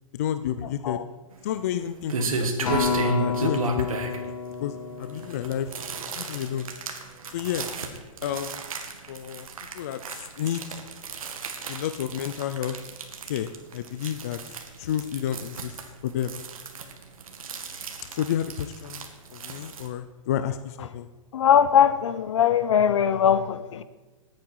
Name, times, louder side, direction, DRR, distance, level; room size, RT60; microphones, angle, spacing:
voice 1, 0.1-1.0 1.4-2.8 3.0-4.2 4.6-5.7 6.2-6.7 7.3-7.7 8.2-8.6 9.1-9.5 9.7-10.0 10.4-10.6 11.7-12.8 13.3-14.4 14.8-15.8 16.0-16.3 18.1-21.1, left 10 dB, 30° left, 0.4 m, -30 dB
sound 1, 1.3-19.9, right 3 dB, 85° right, 2.0 m, -34 dB
Acoustic guitar, 2.7-7.1 7.7-7.9, left 5 dB, 85° left, 3.2 m, -31 dB
voice 2, 21.3-23.8, left 8 dB, 60° left, 0.8 m, -20 dB
18.5 x 8.8 x 4.7 m
hypercardioid pair, 170°, 18 cm